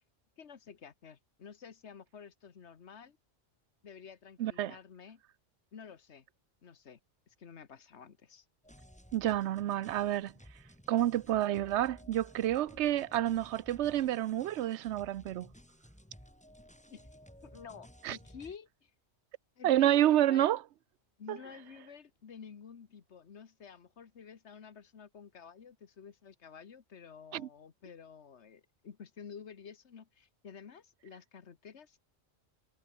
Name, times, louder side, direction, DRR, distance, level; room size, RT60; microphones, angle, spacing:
voice 1, 0.4-3.2 3.8-5.2 5.7-6.3 6.6-7.0 7.3-8.4 16.9-17.1 17.4-18.9 19.6-20.5 21.2-32.0, left 6 dB, 80° left, 1.6 m, -51 dB
voice 2, 4.4-4.7 9.1-10.3 10.9-15.5 18.0-18.2 19.6-20.6 21.3-21.4 27.3-27.5, right 12 dB, 85° right, 0.9 m, -29 dB
sound 1, 8.6-18.6, equal, 5° left, 5.4 m, -56 dB
omnidirectional pair, 1.1 m